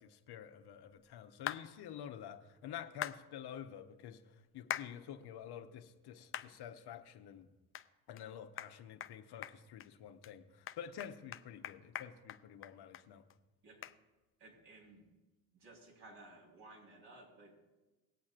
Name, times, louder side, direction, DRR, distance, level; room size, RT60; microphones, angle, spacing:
voice 1, 0.0-7.5 8.1-13.2, left 9 dB, 55° left, 7 dB, 0.9 m, -49 dB
sound 1, 1.5-1.6 3.0-3.2 4.7-4.9 5.4-5.5 6.3-6.5 7.0-7.1 7.7-7.9 8.2-8.3 8.6-8.7 9.0-9.1 9.4-9.9 10.2-10.3 10.7-13.0 13.3-13.4 13.8-14.0, left 10 dB, 30° left, 0.4 m, -42 dB
voice 2, 14.4-15.1 15.5-17.5, right 2 dB, 70° right, -2 dB, 3.9 m, -57 dB
19.0 x 8.5 x 2.5 m, 1.1 s
hypercardioid pair, 60°, 46 cm